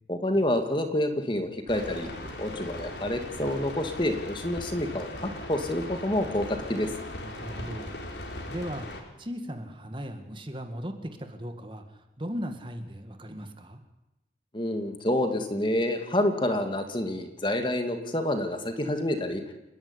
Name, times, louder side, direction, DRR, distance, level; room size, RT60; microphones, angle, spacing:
voice 1, 0.1-2.1 2.4-6.9 14.5-19.4, left 1 dB, 25° left, 6 dB, 2.3 m, -28 dB
sound 1, 1.7-9.0, left 1 dB, 85° left, 4.3 m, -39 dB
voice 2, 7.2-7.9 8.5-8.9 9.2-13.8, equal, 30° right, 6 dB, 2.0 m, -37 dB
30.0 x 12.0 x 9.8 m, 0.96 s
head